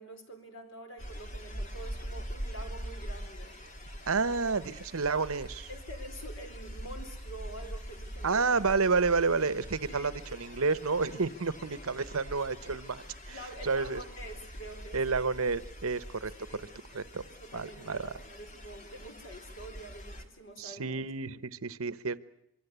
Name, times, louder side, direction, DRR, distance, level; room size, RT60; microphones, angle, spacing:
voice 1, 0.0-3.6 5.7-8.7 9.9-10.1 11.7-11.9 13.3-15.0 16.4-16.6 17.2-21.0, right 1 dB, 55° left, 5 dB, 4.3 m, -47 dB
sound 1, 1.0-20.2, equal, 35° left, 2.1 m, -43 dB
voice 2, 4.1-5.7 8.2-13.4 13.6-14.0 14.9-16.3 16.9-17.2 17.5-18.0 20.6-22.2, right 4 dB, 75° right, 16 dB, 1.0 m, -30 dB
25.0 x 23.5 x 8.2 m, 0.80 s
head